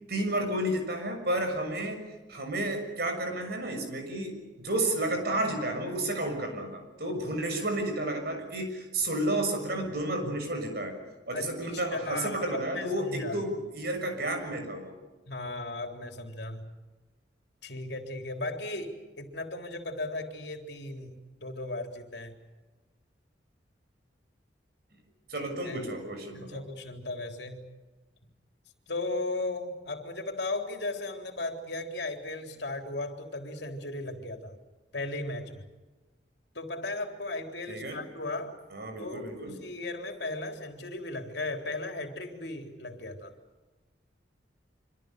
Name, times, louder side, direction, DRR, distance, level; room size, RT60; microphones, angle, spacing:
voice 1, 0.1-2.0 2.3-11.0 11.3-14.9 25.3-26.6 37.7-38.0 38.7-39.6, right 1 dB, 60° right, 6 dB, 6.7 m, -31 dB
voice 2, 11.3-13.4 15.3-16.7 17.6-22.3 25.3-25.8 26.3-27.7 28.9-34.6 34.9-35.6 36.5-38.6 39.0-43.3, left 2 dB, 65° left, 4 dB, 3.8 m, -36 dB
27.0 x 26.0 x 6.8 m, 1.2 s
head